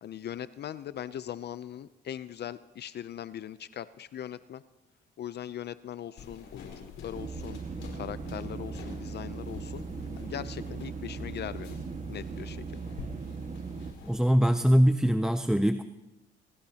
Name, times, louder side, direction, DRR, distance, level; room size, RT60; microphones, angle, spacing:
voice 1, 0.0-4.6 5.2-7.6 7.9-9.9 10.2-11.8 12.1-12.6, left 10 dB, 60° left, 15 dB, 0.6 m, -40 dB
sound 1, 6.2-14.2, left 5 dB, 80° left, 4.4 m, -48 dB
sound 2, 7.1-13.9, right 5 dB, 40° right, 1.7 m, -38 dB
voice 2, 14.0-15.8, equal, 5° right, 10 dB, 0.5 m, -23 dB
25.0 x 18.0 x 2.9 m, 1.0 s
cardioid pair, 90°, 20 cm